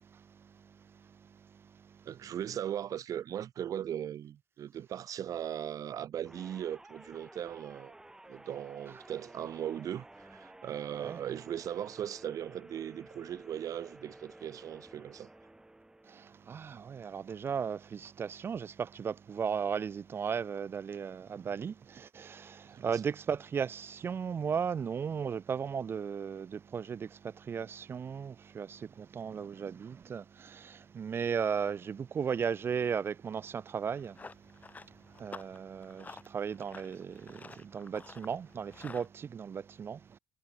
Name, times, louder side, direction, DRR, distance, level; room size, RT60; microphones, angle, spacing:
voice 1, 0.0-2.1 10.9-11.2 16.0-40.2, right 7 dB, 35° right, 0.4 m, -36 dB
voice 2, 2.0-7.9 8.3-15.3 22.7-23.0, right 10 dB, 60° right, 2.3 m, -38 dB
sound 1, 6.2-16.6, right 1 dB, 10° right, 1.8 m, -53 dB
Run, 33.8-39.1, left 4 dB, 25° left, 1.6 m, -51 dB
cardioid pair, 105°, 7 cm